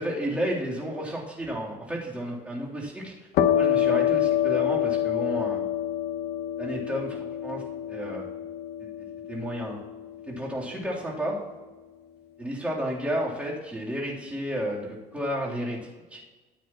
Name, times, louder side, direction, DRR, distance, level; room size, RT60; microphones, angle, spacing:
voice 1, 0.0-3.1 3.5-5.6 6.6-7.6 7.9-8.2 8.8-9.8 10.2-11.3 12.4-15.8 16.1-16.2, equal, 10° right, -5 dB, 3.3 m, -32 dB
sound 1, 3.3-10.8, left 10 dB, 75° left, 0.9 m, -27 dB
13.5 x 9.0 x 3.0 m, 1.2 s
cardioid pair, 110°, 17 cm